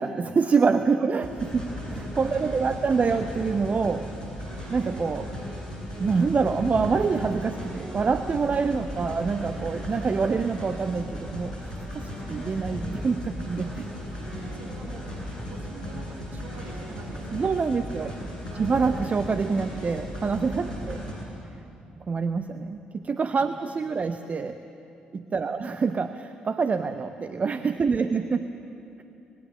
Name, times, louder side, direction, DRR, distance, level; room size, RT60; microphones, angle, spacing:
voice 1, 0.0-4.1 4.7-5.3 6.0-13.9 17.3-18.1 18.5-21.0 22.0-24.6 25.1-28.4, right 5 dB, 35° right, 10 dB, 0.8 m, -26 dB
sound 1, 1.2-21.1, equal, 80° left, 6.8 m, -36 dB
voice 2, 2.2-3.1 8.5-9.2 14.1-18.6 20.6-21.4 23.3-24.1 25.3-25.6, right 3 dB, 50° right, 4 dB, 2.2 m, -47 dB
24.0 x 20.5 x 7.6 m, 2.8 s
figure-of-eight pair, 45°, 4 cm